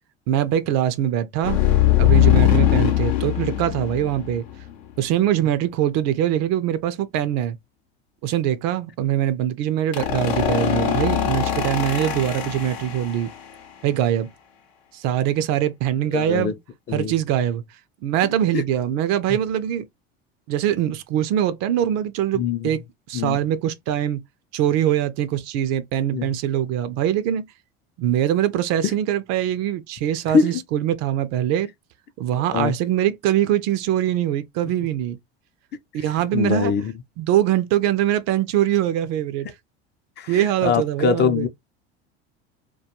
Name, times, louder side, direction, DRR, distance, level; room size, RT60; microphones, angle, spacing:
voice 1, 0.3-1.6 2.0-4.4 5.0-7.6 8.2-13.3 13.8-14.3 14.9-16.6 16.9-17.6 18.0-19.9 20.5-22.8 23.1-24.2 24.5-27.5 28.0-31.7 32.2-35.2 35.9-36.7 37.2-39.5 40.3-41.5, right 11 dB, 55° right, 0.5 m, -23 dB
sound 1, 1.4-4.9 9.9-13.5, left 12 dB, 75° left, 0.7 m, -21 dB
voice 2, 16.1-16.5 16.9-17.1 18.5-18.6 22.3-22.7 23.1-23.4 26.1-26.3 30.3-30.6 32.3-32.7 36.3-36.9 40.2-41.5, left 6 dB, 35° left, 0.5 m, -23 dB
2.2 x 2.2 x 2.8 m
hypercardioid pair, 80°, 31 cm